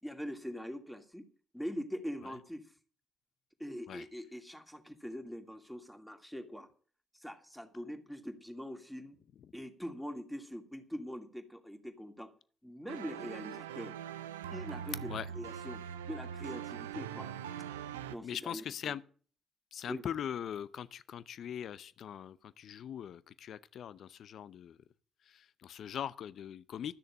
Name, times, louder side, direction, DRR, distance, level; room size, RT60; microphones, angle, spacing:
voice 1, 0.0-1.2 1.5-2.7 3.6-6.7 7.1-9.2 9.5-12.3 12.6-13.9 14.5-15.8 16.1-17.3 18.1-18.9 19.9-20.0, equal, 5° left, 2.5 m, -43 dB
sound 1, 12.9-18.1, right 9 dB, 85° right, 0.6 m, -42 dB
voice 2, 18.2-19.0 19.7-24.8 25.3-26.9, left 9 dB, 60° left, 0.6 m, -41 dB
13.0 x 6.6 x 8.7 m
hypercardioid pair, 45°, 0 cm